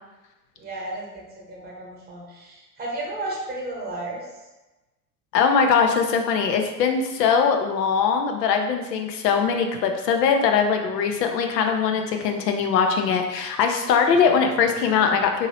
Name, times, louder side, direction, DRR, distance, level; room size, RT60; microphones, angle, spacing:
voice 1, 0.6-4.3, right 2 dB, 20° right, -3 dB, 1.0 m, -33 dB
voice 2, 5.3-15.5, left 6 dB, 75° left, 4 dB, 0.6 m, -21 dB
2.9 x 2.7 x 2.8 m, 1.1 s
hypercardioid pair, 90°, 50 cm